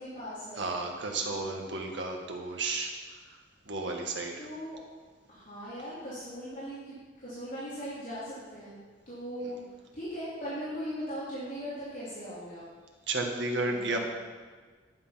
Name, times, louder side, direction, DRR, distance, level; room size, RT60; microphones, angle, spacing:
voice 1, 0.0-0.7 4.4-4.8 5.3-8.8 9.1-9.6 9.9-12.7 13.7-14.0, equal, 45° left, -10 dB, 3.4 m, -39 dB
voice 2, 0.6-3.2 3.7-4.5 9.4-9.6 13.1-14.0, right 3 dB, 70° right, 1 dB, 1.8 m, -33 dB
11.5 x 7.9 x 5.8 m, 1.4 s
head